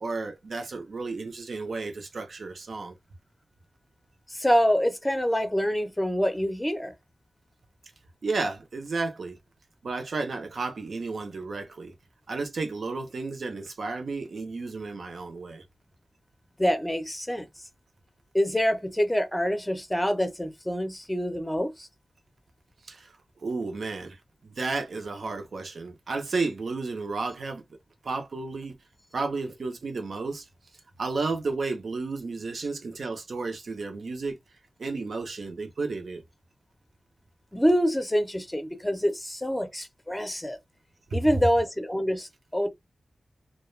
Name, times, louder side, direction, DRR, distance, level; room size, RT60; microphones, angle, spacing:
voice 1, 0.0-2.9 8.2-9.4 9.8-11.9 12.3-15.6 22.9-23.2 23.4-27.6 28.0-28.7 29.1-30.5 31.0-34.4 34.8-36.2 41.1-41.2, right 3 dB, 75° right, 0.6 m, -32 dB
voice 2, 4.3-6.9 16.6-17.5 18.3-21.9 37.5-40.6 41.1-42.7, equal, 10° left, 0.6 m, -26 dB
2.3 x 2.1 x 3.1 m
wide cardioid pair, 85°, 0 cm